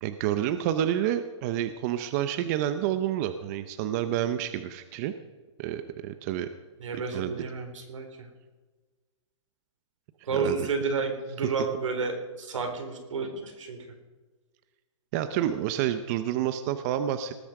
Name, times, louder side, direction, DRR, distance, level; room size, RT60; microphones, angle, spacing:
voice 1, 0.0-5.1 5.6-6.5 6.9-7.4 10.3-10.7 11.4-11.5 15.1-17.3, right 11 dB, 35° right, 10 dB, 0.8 m, -29 dB
voice 2, 6.8-8.3 10.3-13.8, right 4 dB, 85° right, 4 dB, 4.0 m, -31 dB
19.0 x 8.6 x 6.6 m, 1.3 s
hypercardioid pair, 155°, 16 cm